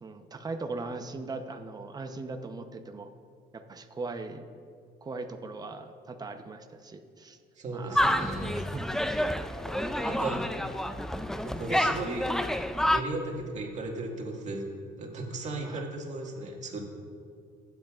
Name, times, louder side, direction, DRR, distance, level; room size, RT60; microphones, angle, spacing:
voice 1, 0.0-3.1 3.5-4.4 5.0-7.4 7.7-8.1 8.4-8.9 10.0-10.2 11.7-11.8 15.6-15.8, right 3 dB, 25° right, 6 dB, 0.8 m, -39 dB
voice 2, 7.6-8.6 10.0-10.4 11.4-12.4 12.9-14.7 15.0-16.8, right 2 dB, 45° right, 0 dB, 1.9 m, -36 dB
sound 1, 7.9-13.0, equal, 5° left, 0.3 m, -29 dB
22.0 x 8.0 x 2.4 m, 2.2 s
cardioid pair, 110°, 17 cm